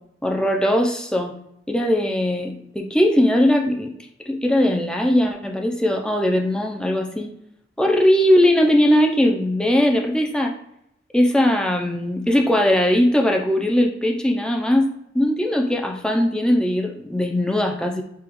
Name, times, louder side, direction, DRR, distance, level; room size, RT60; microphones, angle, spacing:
voice 1, 0.2-1.3 1.7-4.0 4.3-7.3 7.8-10.5 11.1-18.0, left 1 dB, 5° left, 2 dB, 0.5 m, -19 dB
6.9 x 2.3 x 3.1 m, 0.78 s
head